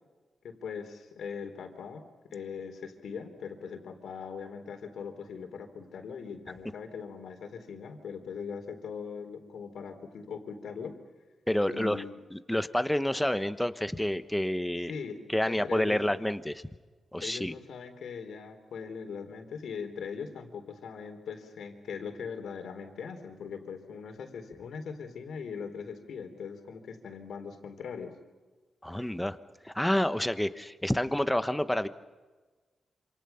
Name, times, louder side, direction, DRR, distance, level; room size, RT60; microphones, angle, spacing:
voice 1, 0.4-11.0 11.7-12.1 14.9-15.2 15.5-16.0 17.2-28.1, left 6 dB, 85° left, 6 dB, 3.8 m, -40 dB
voice 2, 11.5-14.9 15.3-16.6 17.1-17.5 28.8-29.4 29.6-31.9, left 1 dB, 5° left, 11 dB, 1.1 m, -29 dB
27.5 x 27.5 x 5.8 m, 1.3 s
wide cardioid pair, 110°, 0 cm